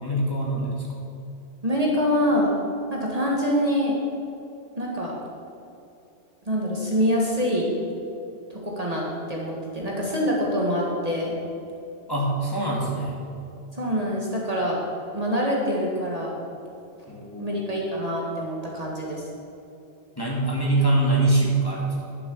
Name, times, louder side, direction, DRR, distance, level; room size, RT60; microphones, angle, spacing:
voice 1, 0.0-1.0 12.1-13.2 17.1-17.6 20.2-22.0, right 2 dB, 20° left, -4 dB, 2.3 m, -24 dB
voice 2, 1.6-2.5 2.9-4.0 4.8-5.1 6.5-7.7 8.5-11.4 13.7-14.8 15.1-16.3 17.4-19.2, equal, 35° right, -3 dB, 1.8 m, -25 dB
11.0 x 7.5 x 6.9 m, 2.7 s
omnidirectional pair, 1.2 m